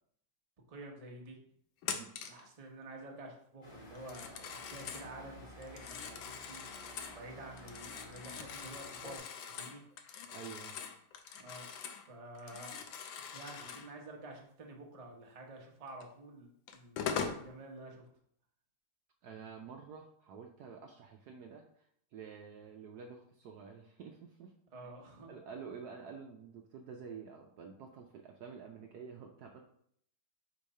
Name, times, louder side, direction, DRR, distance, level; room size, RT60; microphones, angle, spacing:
voice 1, 0.7-1.4 2.2-9.8 11.4-11.7 12.1-12.9 13.3-18.1 24.7-25.3, right 2 dB, 25° right, 0 dB, 0.8 m, -50 dB
Telephone, 1.8-2.4 4.0-5.1 5.6-7.2 7.6-12.1 12.3-13.9 16.0-16.1 16.7-17.4, left 7 dB, 80° left, 1.4 m, -42 dB
sound 1, 3.6-9.2, equal, 30° left, 1.4 m, -53 dB
voice 2, 10.3-10.8 19.2-24.5 25.3-29.6, right 6 dB, 70° right, 2 dB, 1.0 m, -49 dB
5.1 x 4.5 x 4.2 m, 0.66 s
omnidirectional pair, 2.1 m